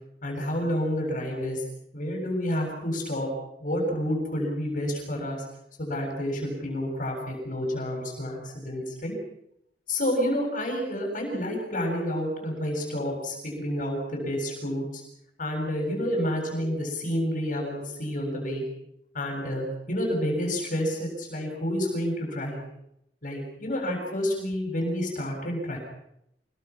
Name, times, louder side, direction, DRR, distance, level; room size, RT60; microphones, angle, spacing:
voice 1, 0.2-1.6 1.9-3.3 3.6-5.4 5.8-9.1 9.9-15.0 15.4-18.6 19.1-22.6 23.2-25.8, equal, 50° left, 1 dB, 7.6 m, -29 dB
28.0 x 22.5 x 6.2 m, 0.79 s
head